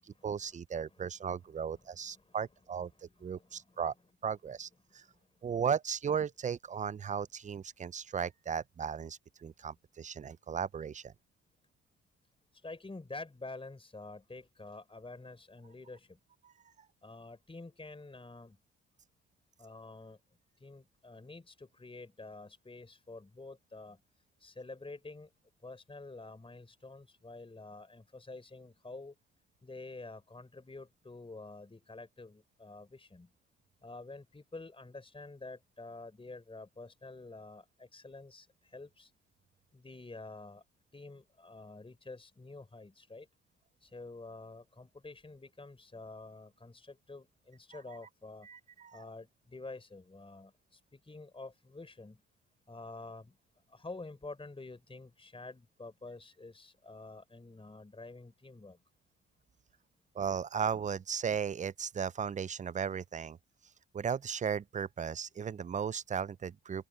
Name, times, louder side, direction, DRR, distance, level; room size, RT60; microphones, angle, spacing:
voice 1, 0.0-3.9 4.2-5.0 5.4-11.1 16.4-16.5 47.7-48.0 48.4-49.0 60.1-63.4 63.9-66.9, right 7 dB, 25° right, 0.4 m, -36 dB
voice 2, 3.0-3.8 4.9-5.1 12.6-16.2 17.0-18.6 19.6-20.2 20.6-24.0 24.4-25.3 25.6-29.2 29.6-33.3 33.8-39.1 39.7-40.6 40.9-43.3 43.8-48.5 48.9-52.2 52.7-53.4 53.7-58.8, left 3 dB, 20° left, 4.1 m, -48 dB
cardioid pair, 90°, 30 cm